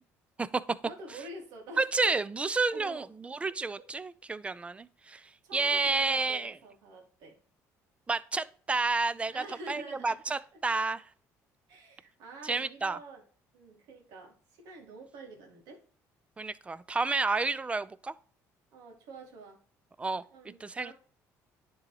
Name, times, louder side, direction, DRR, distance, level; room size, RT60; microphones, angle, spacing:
voice 1, 0.8-2.2 2.7-3.1 3.8-3.9 5.4-7.4 9.3-10.2 10.5-10.6 11.7-13.2 13.5-15.8 18.7-19.6 20.3-20.9, right 2 dB, 80° right, 2.2 m, -47 dB
voice 2, 1.8-5.2 5.5-6.6 8.1-11.0 12.4-13.0 16.4-18.1 20.0-20.9, right 3 dB, 20° right, 0.5 m, -30 dB
10.5 x 3.9 x 3.1 m
cardioid pair, 100°, 6 cm